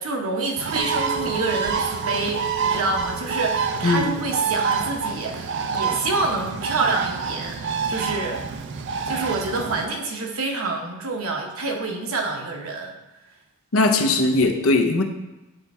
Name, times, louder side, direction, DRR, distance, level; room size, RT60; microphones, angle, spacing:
voice 1, 0.0-7.6 7.9-8.5 9.1-13.0, right 3 dB, 80° right, 1 dB, 1.1 m, -27 dB
Bird, 0.6-9.8, right 5 dB, 55° right, 0.4 m, -27 dB
Chink clink, 0.8-5.1 5.5-5.9, right 4 dB, 25° left, 0.6 m, -36 dB
voice 2, 3.8-4.2 13.7-15.0, left 2 dB, 75° left, 4 dB, 0.7 m, -19 dB
8.8 x 3.4 x 4.2 m, 1.0 s
head